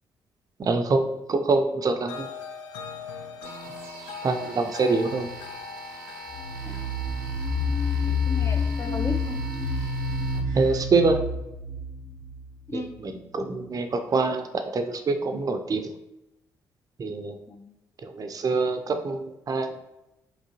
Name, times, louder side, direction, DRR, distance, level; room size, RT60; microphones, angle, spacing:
voice 1, 0.6-2.3 4.2-5.3 10.5-11.2 12.7-15.9 17.0-17.4 18.0-19.8, right 3 dB, 35° right, 6 dB, 0.5 m, -25 dB
sound 1, 2.1-9.2, left 6 dB, 75° left, 0.4 m, -42 dB
sound 2, 3.4-10.8, right 1 dB, 85° right, 0.6 m, -43 dB
sound 3, 6.3-12.9, left 3 dB, 55° left, 1.0 m, -28 dB
voice 2, 8.0-9.4 12.7-12.9 17.5-17.8, left 2 dB, 25° left, 4 dB, 0.6 m, -36 dB
5.1 x 2.9 x 2.8 m, 0.95 s
hypercardioid pair, 40°, 10 cm